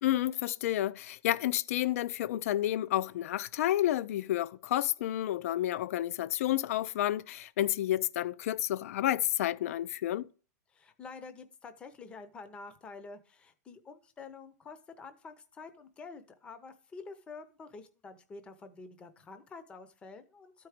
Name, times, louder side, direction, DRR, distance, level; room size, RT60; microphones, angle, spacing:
voice 1, 0.0-10.3, left 13 dB, 55° left, 0.4 m, -30 dB
voice 2, 10.7-20.7, left 4 dB, 10° left, 0.7 m, -48 dB
12.5 x 4.6 x 5.0 m
supercardioid pair, 165°, 9 cm